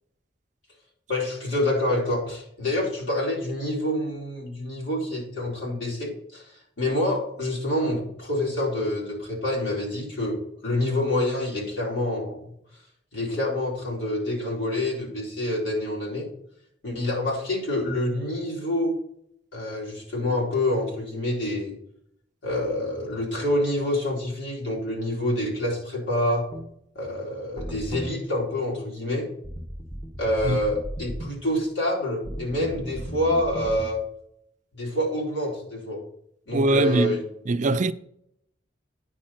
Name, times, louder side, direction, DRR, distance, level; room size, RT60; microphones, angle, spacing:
voice 1, 1.1-6.4 6.8-12.4 13.1-16.3 16.8-19.0 19.5-21.8 22.4-26.5 26.9-29.3 30.2-34.0 34.7-36.0 36.5-37.2, left 1 dB, 85° left, 4.2 m, -27 dB
sound 1, 26.5-26.7 27.6-28.1 29.4-31.3 32.2-33.9, equal, 20° left, 1.6 m, -36 dB
voice 2, 36.5-37.9, right 2 dB, 40° right, 0.4 m, -23 dB
9.6 x 6.2 x 4.3 m
head